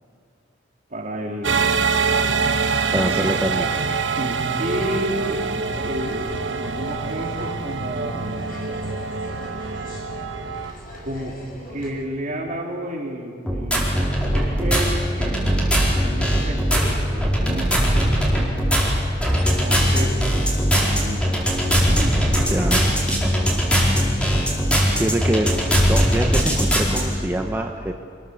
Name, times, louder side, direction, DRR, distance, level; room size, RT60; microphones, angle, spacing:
voice 1, 0.9-1.8 2.9-3.2 3.5-3.7 4.2-5.5 5.8-8.5 11.0-11.4 11.7-14.0 14.3-18.1 19.3-20.2 20.8-21.3 21.9-22.8 23.2-23.5, right 1 dB, 45° right, 0 dB, 3.5 m, -31 dB
sound 1, 1.4-10.7, right 5 dB, 75° right, 1.2 m, -25 dB
voice 2, 2.9-3.7 22.3-22.8 25.0-25.6 25.9-27.9, right 1 dB, 10° right, 3 dB, 1.0 m, -25 dB
sound 2, 4.5-11.9, equal, 45° left, 6.9 m, -38 dB
sound 3, 13.5-27.0, equal, 5° left, 4.6 m, -20 dB
27.5 x 21.0 x 7.2 m, 2.3 s
head